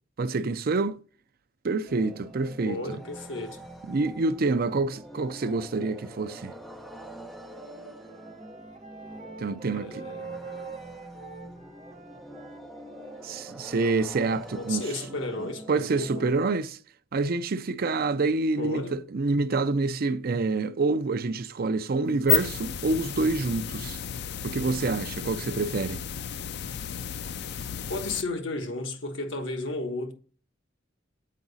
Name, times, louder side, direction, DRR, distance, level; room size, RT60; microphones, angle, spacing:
voice 1, 0.2-1.0 1.6-3.0 3.9-6.5 9.4-10.1 13.2-14.9 15.7-16.8 17.1-24.0 24.4-26.0, right 3 dB, 50° right, 0.5 m, -27 dB
sound 1, 1.9-16.4, right 1 dB, ahead, 0.7 m, -45 dB
voice 2, 2.6-3.7 9.6-10.4 14.5-16.3 18.6-19.0 27.9-30.1, left 2 dB, 80° left, 1.1 m, -34 dB
Wind instrument woodwind instrument, 7.2-13.6, right 5 dB, 35° right, 1.0 m, -45 dB
sound 2, 22.1-28.2, left 9 dB, 60° left, 0.4 m, -32 dB
7.4 x 4.8 x 4.0 m
head